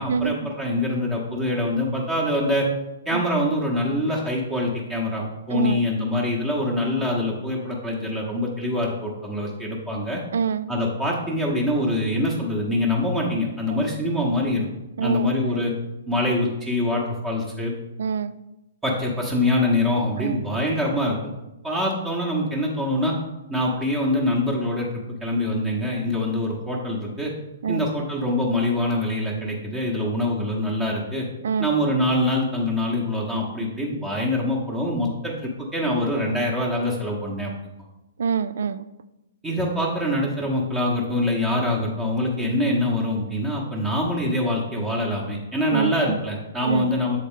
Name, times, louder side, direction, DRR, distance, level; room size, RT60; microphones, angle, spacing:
voice 1, 0.0-2.7 3.0-10.2 10.7-14.7 15.0-15.7 16.1-17.7 18.8-21.2 21.6-23.2 23.5-24.9 25.2-27.3 27.7-31.3 31.6-37.5 39.4-47.2, left 1 dB, 15° right, -2 dB, 1.0 m, -24 dB
voice 2, 5.5-5.8 10.3-10.7 13.7-13.8 15.0-15.6 18.0-18.3 20.2-20.4 27.6-27.9 31.4-31.7 38.2-38.8 45.7-46.2 46.6-46.9, right 6 dB, 60° right, 14 dB, 0.3 m, -26 dB
7.8 x 4.1 x 3.7 m, 0.97 s
figure-of-eight pair, 115°, 0 cm